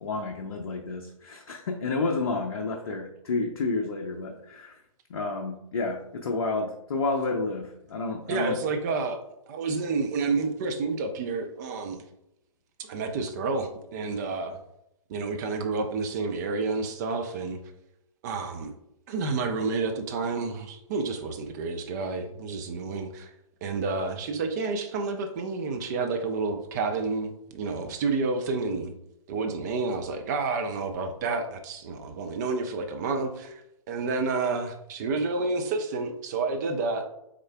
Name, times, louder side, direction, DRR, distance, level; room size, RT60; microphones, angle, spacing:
voice 1, 0.0-4.7 5.1-8.6, left 3 dB, 50° left, 1 dB, 0.6 m, -30 dB
voice 2, 8.3-12.0 12.8-14.6 15.1-17.6 18.2-18.7 19.1-23.3 23.6-28.9 29.3-33.6 33.9-37.1, right 3 dB, 30° right, 5 dB, 0.5 m, -30 dB
6.3 x 3.7 x 2.2 m, 0.82 s
figure-of-eight pair, 120°, 18 cm